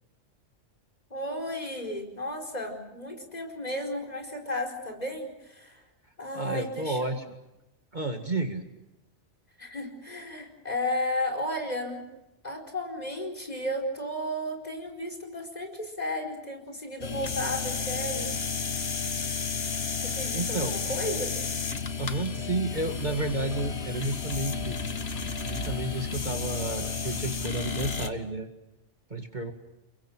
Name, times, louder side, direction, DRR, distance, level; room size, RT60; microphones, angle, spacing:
voice 1, 1.1-5.8 6.2-7.1 9.6-12.1 12.4-18.4 20.0-21.5, left 1 dB, 30° left, 3 dB, 4.8 m, -34 dB
voice 2, 6.3-7.2 7.9-8.6 20.0-20.8 22.0-24.8 25.5-28.5 29.1-29.5, right 2 dB, 35° right, 5 dB, 2.0 m, -31 dB
sound 1, 17.0-28.1, left 5 dB, 55° left, 1.6 m, -32 dB
sound 2, 22.7-28.0, right 1 dB, 15° right, 4.9 m, -47 dB
29.5 x 22.5 x 6.3 m, 0.95 s
omnidirectional pair, 1.3 m